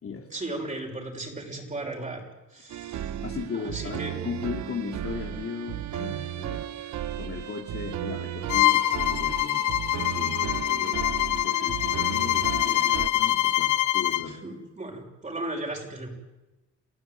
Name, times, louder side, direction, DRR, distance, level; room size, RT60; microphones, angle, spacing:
voice 1, 0.1-2.2 2.5-3.2 3.5-4.1 5.9-6.3 14.3-16.1, right 2 dB, 25° right, 0 dB, 6.2 m, -36 dB
sound 1, 2.7-13.1, right 11 dB, 70° right, 1.1 m, -35 dB
voice 2, 3.2-6.6 7.2-14.4, left 6 dB, 45° left, 2 dB, 2.6 m, -37 dB
Bowed string instrument, 8.5-14.3, left 14 dB, 75° left, 1.0 m, -24 dB
29.0 x 16.0 x 9.2 m, 1.1 s
cardioid pair, 90°, 30 cm